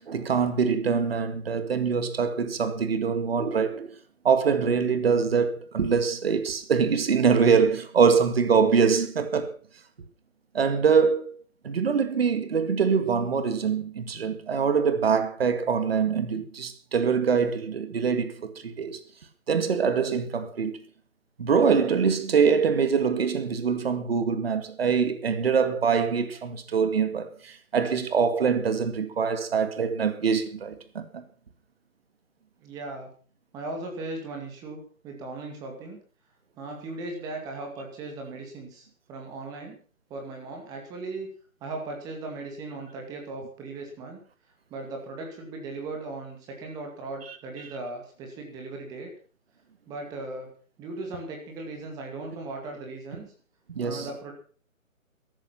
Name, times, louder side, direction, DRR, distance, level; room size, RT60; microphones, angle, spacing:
voice 1, 0.0-4.0 4.2-9.6 10.5-11.3 11.6-19.0 19.5-20.8 21.4-31.2 53.7-54.1, right 6 dB, 45° right, 2.2 m, -24 dB
voice 2, 32.6-33.1 33.5-36.0 36.6-39.8 40.1-41.3 41.6-44.2 44.7-49.1 49.9-50.5 50.8-53.3 53.8-54.3, right 2 dB, 10° right, 2.2 m, -38 dB
14.0 x 13.5 x 5.9 m
figure-of-eight pair, 160°, 41 cm